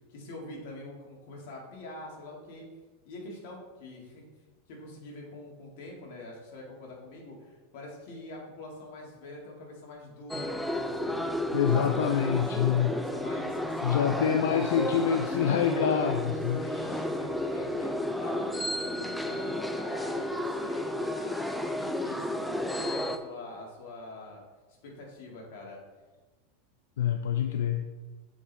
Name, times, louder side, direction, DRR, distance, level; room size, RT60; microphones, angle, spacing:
voice 1, 0.1-2.7 3.0-4.2 4.7-11.3 11.7-12.5 12.9-15.4 16.6-17.9 18.2-24.4 24.8-25.8, left 2 dB, 65° left, -2 dB, 2.0 m, -44 dB
sound 1, 10.3-23.2, left 1 dB, ahead, 0.4 m, -32 dB
voice 2, 11.5-12.9 13.8-16.6 27.0-27.8, left 8 dB, 90° left, 6 dB, 0.4 m, -26 dB
7.2 x 4.2 x 3.4 m, 1.2 s
supercardioid pair, 135°, 0 cm